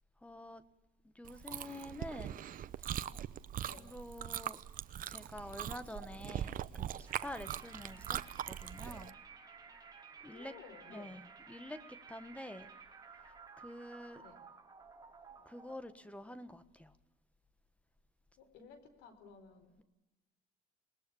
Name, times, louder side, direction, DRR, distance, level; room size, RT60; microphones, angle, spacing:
voice 1, 0.2-0.6 1.1-2.4 2.8-3.0 3.6-4.6 5.1-8.2 8.5-9.1 10.2-10.5 10.9-12.7 13.6-14.2 15.4-17.0, left 1 dB, 5° left, 12 dB, 1.4 m, -48 dB
Chewing mastication, 1.2-9.1, right 11 dB, 55° right, 0.9 m, -41 dB
sound 1, 7.1-15.8, right 5 dB, 20° right, 4.8 m, -55 dB
voice 2, 10.2-11.2 14.2-14.4 18.4-19.8, left 6 dB, 90° left, 10 dB, 4.6 m, -56 dB
27.5 x 20.5 x 7.1 m, 1.0 s
cardioid pair, 110°, 17 cm